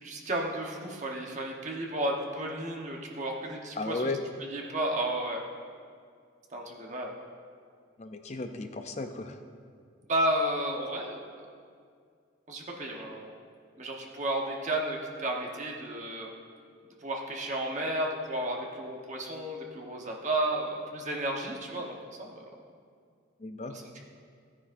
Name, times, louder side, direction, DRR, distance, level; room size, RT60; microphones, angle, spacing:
voice 1, 0.0-4.1 4.4-5.4 6.5-7.1 10.1-11.3 12.5-13.3 13.8-16.3 17.0-22.4 23.7-23.8, right 1 dB, 35° right, 0 dB, 1.1 m, -32 dB
voice 2, 3.8-4.2 8.0-9.4 23.4-23.7, left 2 dB, 35° left, 7 dB, 0.5 m, -34 dB
13.5 x 9.9 x 2.6 m, 2.1 s
head